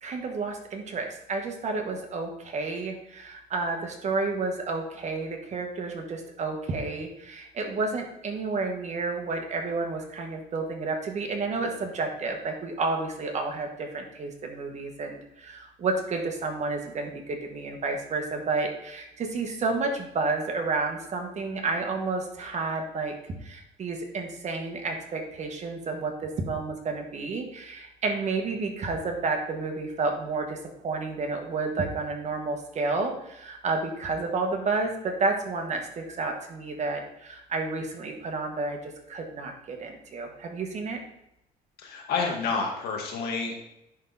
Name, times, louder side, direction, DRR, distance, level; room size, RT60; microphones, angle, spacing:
voice 1, 0.0-41.0, right 3 dB, 45° right, 3 dB, 1.4 m, -31 dB
voice 2, 41.8-43.6, left 4 dB, 70° left, 1 dB, 1.7 m, -29 dB
10.0 x 3.7 x 4.0 m, 0.83 s
cardioid pair, 110°, 17 cm